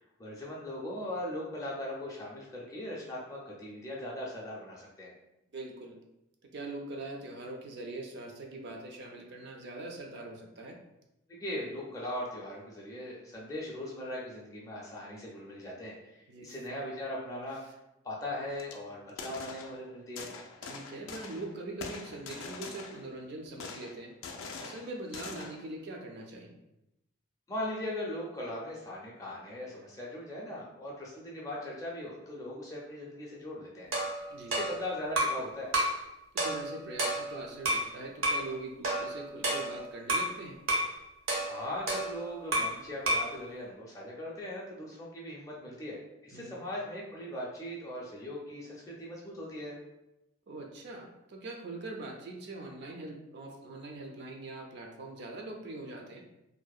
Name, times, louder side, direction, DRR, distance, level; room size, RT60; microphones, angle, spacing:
voice 1, 0.2-5.1 11.3-17.8 18.0-20.3 27.5-33.9 34.5-35.7 41.4-46.0 46.2-49.7, left 1 dB, 15° left, -4 dB, 0.4 m, -39 dB
voice 2, 5.5-6.0 6.5-10.8 16.3-16.5 20.7-24.1 24.6-26.6 34.3-34.6 36.3-40.6 46.3-46.7 50.5-56.2, right 2 dB, 55° right, 2 dB, 0.3 m, -42 dB
sound 1, 18.5-18.7 19.1-19.8 20.2-21.5 21.8-23.2 23.6-25.7, left 4 dB, 85° left, 0.3 m, -43 dB
sound 2, 33.9-35.4 35.7-36.0 36.4-37.9 38.2-38.5 38.8-40.3 40.7-40.9 41.3-42.8 43.1-43.3, right 1 dB, 85° right, 0.7 m, -31 dB
2.6 x 2.0 x 2.3 m, 0.89 s
head